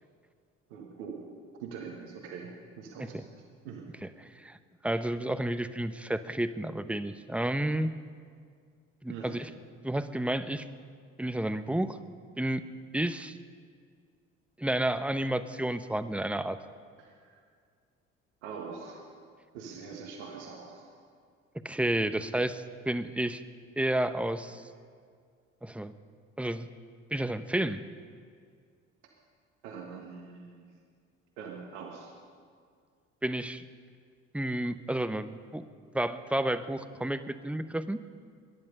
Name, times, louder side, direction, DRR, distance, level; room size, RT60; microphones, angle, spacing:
voice 1, 0.7-1.2 1.6-3.9 9.1-9.5 17.0-17.4 18.4-19.0 19.5-20.9 29.6-30.7 31.4-32.1, right 5 dB, 75° right, 0 dB, 1.8 m, -43 dB
voice 2, 4.8-7.9 9.0-9.5 9.8-10.7 11.2-12.0 12.4-12.6 12.9-13.4 14.6-16.6 21.6-23.4 23.8-24.6 25.6-25.9 26.4-26.7 27.1-27.8 33.2-33.6 34.3-35.6 35.9-38.0, right 1 dB, 5° right, 12 dB, 0.8 m, -31 dB
22.5 x 11.0 x 5.4 m, 2.1 s
hypercardioid pair, 55°, 36 cm